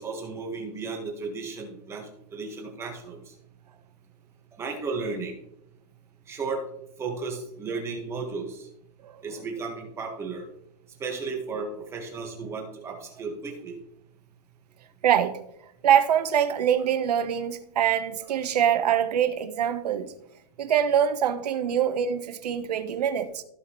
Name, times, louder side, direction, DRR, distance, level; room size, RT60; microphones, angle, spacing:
voice 1, 0.0-3.2 4.5-5.3 6.3-6.6 7.0-8.7 9.2-10.4 11.0-13.8, right 4 dB, 15° right, 1.6 m, -34 dB
voice 2, 15.0-15.4 15.8-20.1 20.6-23.4, right 9 dB, 80° right, 1.1 m, -24 dB
15.5 x 5.2 x 3.1 m
supercardioid pair, 165°, 20 cm